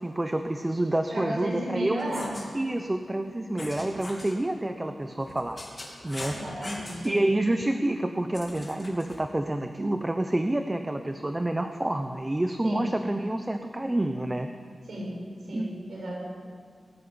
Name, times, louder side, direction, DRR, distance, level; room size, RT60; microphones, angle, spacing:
voice 1, 0.0-2.1 2.5-5.6 6.0-6.4 7.0-14.5 15.5-15.7, right 1 dB, 15° right, 7 dB, 0.8 m, -28 dB
voice 2, 1.1-2.4 6.2-7.2 12.6-12.9 14.9-15.2 15.5-16.2, right 1 dB, 65° right, -2 dB, 7.0 m, -34 dB
sound 1, 2.0-2.5 3.6-4.3 5.2-7.1 8.3-9.2, left 2 dB, 20° left, 3.2 m, -41 dB
19.0 x 15.0 x 9.6 m, 2.1 s
wide cardioid pair, 170°, 0 cm